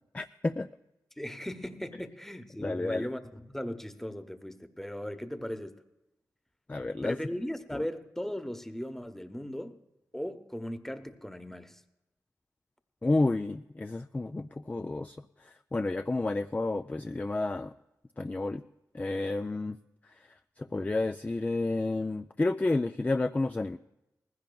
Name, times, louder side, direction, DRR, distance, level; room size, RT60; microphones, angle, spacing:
voice 1, 0.1-0.7 2.6-3.1 6.7-7.2 7.7-7.8 13.0-17.7 18.2-18.6 18.9-19.8 20.6-23.8, left 2 dB, 20° left, 0.4 m, -30 dB
voice 2, 1.2-5.8 7.0-9.7 10.1-11.8, equal, 5° left, 0.9 m, -38 dB
19.5 x 15.5 x 2.3 m
cardioid pair, 50°, 7 cm